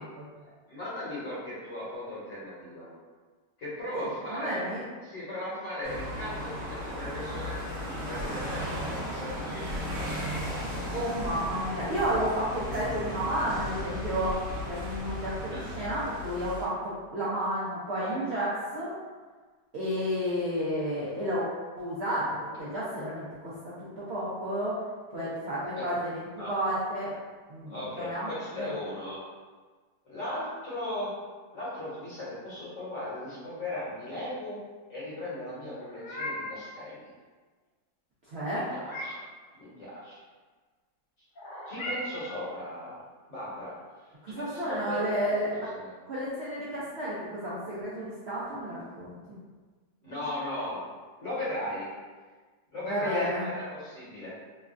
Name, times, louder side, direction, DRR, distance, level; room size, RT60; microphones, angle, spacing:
voice 1, 0.7-2.9 3.6-4.6 5.0-10.1 15.5-15.9 18.0-18.2 25.8-25.9 26.4-26.5 27.7-29.2 30.0-31.1 31.5-34.6 34.9-37.0 38.5-39.2 39.6-40.2 41.7-43.0 43.3-43.7 44.3-45.0 45.7-45.9 50.0-50.9 51.2-51.9 52.7-54.4, left 1 dB, 50° left, -9 dB, 1.2 m, -37 dB
voice 2, 3.9-4.8 10.7-18.9 19.7-21.5 21.8-23.6 24.0-24.8 25.1-27.1 27.5-28.7 38.3-38.7 44.2-45.7 46.1-49.4 52.8-53.4, equal, 80° right, -9 dB, 0.5 m, -31 dB
sound 1, 5.8-16.7, left 1 dB, 60° right, 1.1 m, -36 dB
sound 2, 7.9-9.3 9.7-14.8, equal, 40° right, 1.1 m, -43 dB
Meow, 35.7-36.7 38.4-39.3 41.4-42.5, left 1 dB, 75° left, 0.4 m, -38 dB
3.1 x 2.3 x 2.4 m, 1.4 s
omnidirectional pair, 1.9 m